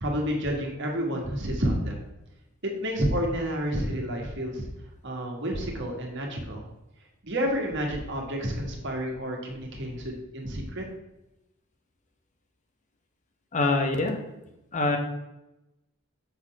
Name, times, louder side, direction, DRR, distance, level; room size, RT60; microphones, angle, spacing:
voice 1, 0.0-2.0 2.6-4.6 5.0-6.7 7.2-10.8, equal, 55° right, 1 dB, 1.7 m, -30 dB
voice 2, 13.5-14.2 14.7-15.0, left 3 dB, 35° left, 4 dB, 0.9 m, -24 dB
6.7 x 4.4 x 5.8 m, 0.93 s
head